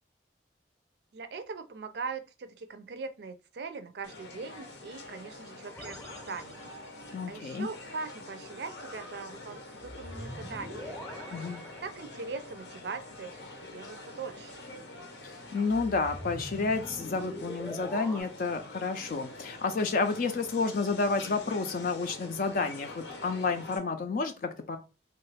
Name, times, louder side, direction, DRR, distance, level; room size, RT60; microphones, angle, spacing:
voice 1, 1.1-6.7 7.3-11.3 11.8-13.5 13.7-14.6, right 4 dB, 65° right, 0.4 m, -41 dB
sound 1, 4.0-23.8, left 2 dB, 80° left, 0.7 m, -46 dB
sound 2, 5.8-7.1 9.8-12.5 15.7-18.2, equal, 10° left, 0.7 m, -43 dB
voice 2, 7.1-7.7 11.3-11.6 15.2-24.8, left 4 dB, 50° left, 0.4 m, -30 dB
3.1 x 2.4 x 3.2 m
head